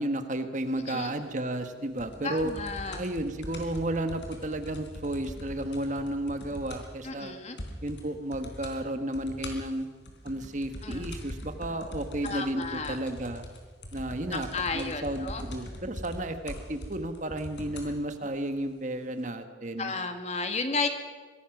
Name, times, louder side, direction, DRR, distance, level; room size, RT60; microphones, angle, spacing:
voice 1, 0.0-2.5 3.0-7.3 7.8-9.9 10.2-13.5 13.9-19.9, right 1 dB, 40° right, 8 dB, 1.4 m, -33 dB
sound 1, 2.0-7.0 7.3-7.4 7.6-8.0 8.3-8.8 9.1-18.0 18.8-18.9, left 1 dB, 75° left, 3.8 m, -42 dB
voice 2, 2.2-3.0 7.0-7.6 10.8-11.1 12.2-13.0 14.3-15.4 19.8-20.9, left 4 dB, 35° left, 6 dB, 1.8 m, -33 dB
24.0 x 18.0 x 6.0 m, 1.5 s
head